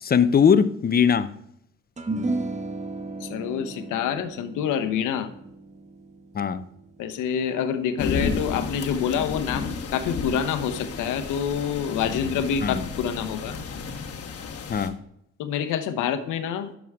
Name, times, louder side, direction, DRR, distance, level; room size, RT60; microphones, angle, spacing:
voice 1, 0.0-1.3 6.3-6.6 12.6-12.8 14.7-15.0, left 7 dB, 30° left, 0.6 m, -20 dB
sound 1, 2.0-8.5, right 2 dB, 25° right, 1.0 m, -35 dB
voice 2, 3.2-5.3 7.0-13.6 15.4-16.8, left 8 dB, 90° left, 0.9 m, -27 dB
sound 2, 8.0-14.9, left 5 dB, 50° left, 1.3 m, -32 dB
11.0 x 6.2 x 3.5 m
cardioid pair, 90°, 30 cm